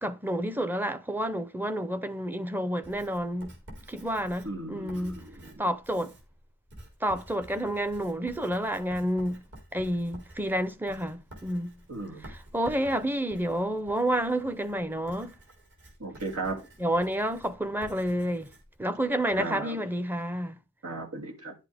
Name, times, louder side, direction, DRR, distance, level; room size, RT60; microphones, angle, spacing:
voice 1, 0.0-3.5 3.9-5.2 5.6-6.1 7.0-9.4 9.7-11.8 12.3-15.3 16.8-18.5 18.8-20.6, right 1 dB, 10° right, 0.7 m, -29 dB
Writing, 2.8-19.5, right 1 dB, 55° right, 4.1 m, -50 dB
voice 2, 4.4-5.6 11.9-12.3 16.0-16.6 19.4-19.8 20.8-21.5, right 2 dB, 80° right, 2.8 m, -36 dB
10.5 x 8.2 x 3.5 m
head